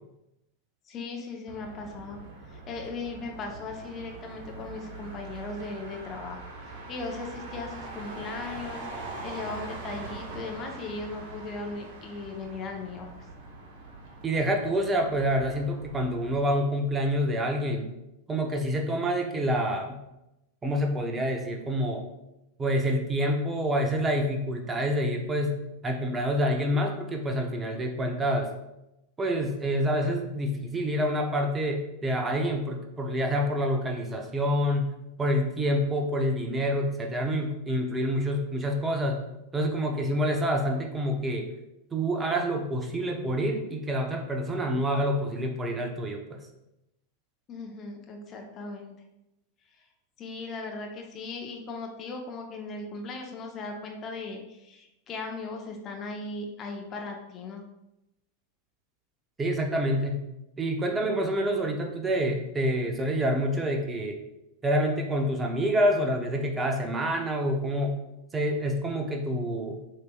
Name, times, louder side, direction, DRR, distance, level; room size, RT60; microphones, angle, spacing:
voice 1, 0.9-2.2 2.5-13.1 47.5-48.9 50.2-57.6, left 3 dB, 30° left, 2 dB, 0.7 m, -38 dB
Motor vehicle (road), 1.5-16.4, right 3 dB, 55° right, 0.9 m, -42 dB
voice 2, 14.2-17.9 18.3-20.0 20.6-22.0 22.6-25.6 25.8-28.5 29.2-34.9 35.2-39.2 39.5-41.5 41.9-46.4 59.4-60.2 60.6-64.2 64.6-68.0 68.3-69.8, equal, 15° right, 2 dB, 0.7 m, -27 dB
7.6 x 2.8 x 2.3 m, 0.90 s
figure-of-eight pair, 90°, 0 cm